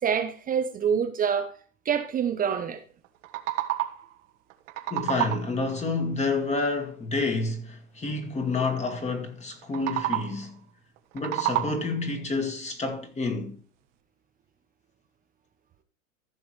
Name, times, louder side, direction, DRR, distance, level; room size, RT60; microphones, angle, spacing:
voice 1, 0.0-1.5 1.9-2.8, right 7 dB, 20° right, 0.9 m, -26 dB
sound 1, 3.0-4.2 4.5-5.6 9.6-10.5 11.0-12.1, right 16 dB, 60° right, 1.4 m, -30 dB
voice 2, 4.9-10.5 11.1-13.5, left 3 dB, 15° left, 1.9 m, -29 dB
15.0 x 6.1 x 3.2 m
hypercardioid pair, 120°, 42 cm